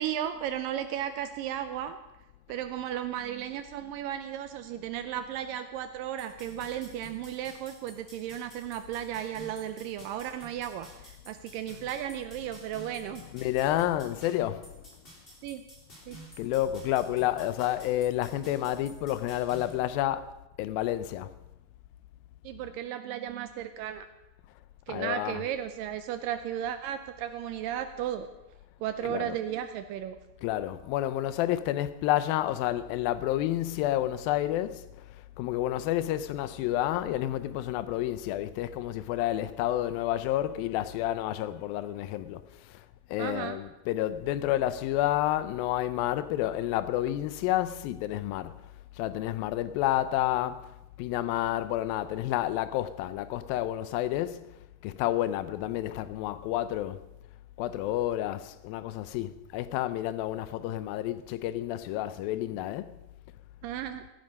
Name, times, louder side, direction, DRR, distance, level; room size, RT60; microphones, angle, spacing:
voice 1, 0.0-2.0 2.5-13.2 15.4-15.6 16.1-16.2 22.4-24.1 24.9-28.3 28.8-30.2 43.2-43.6 63.6-64.0, right 10 dB, 90° right, 2.0 m, -35 dB
sound 1, 6.2-19.7, right 1 dB, 15° left, 2.6 m, -52 dB
voice 2, 13.1-14.7 16.4-20.3 20.6-21.3 24.9-25.5 29.0-29.4 30.4-48.6 49.0-50.7 51.0-54.5 54.8-57.0 57.6-62.9, left 13 dB, 80° left, 2.2 m, -30 dB
16.5 x 11.0 x 5.3 m
omnidirectional pair, 4.6 m